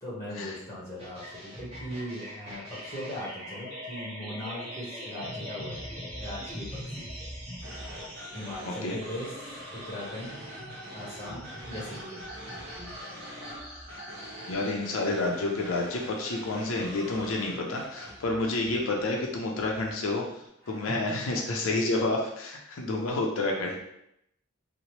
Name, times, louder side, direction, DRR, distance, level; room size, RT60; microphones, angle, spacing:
voice 1, 0.0-5.8 6.2-7.1 8.3-10.5 10.9-12.3 20.6-21.4, equal, 15° left, -7 dB, 0.9 m, -39 dB
sound 1, 1.0-20.5, equal, 30° right, 0.9 m, -43 dB
sound 2, 7.6-18.1, equal, 65° right, 0.7 m, -44 dB
voice 2, 8.6-9.0 14.5-20.2 20.7-23.8, left 2 dB, 85° left, 0 dB, 0.5 m, -29 dB
2.9 x 2.0 x 3.0 m, 0.76 s
head